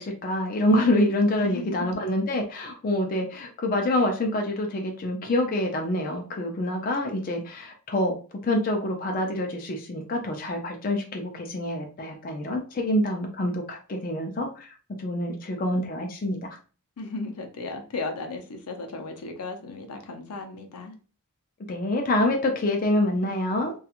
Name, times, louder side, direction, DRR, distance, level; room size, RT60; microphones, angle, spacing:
voice 1, 0.0-8.2 8.4-14.7 15.0-16.4 21.7-23.7, left 1 dB, 40° left, 2 dB, 0.4 m, -26 dB
voice 2, 1.3-1.7 17.0-20.9, left 3 dB, 85° left, 4 dB, 0.6 m, -35 dB
2.8 x 2.3 x 2.4 m, 0.37 s
head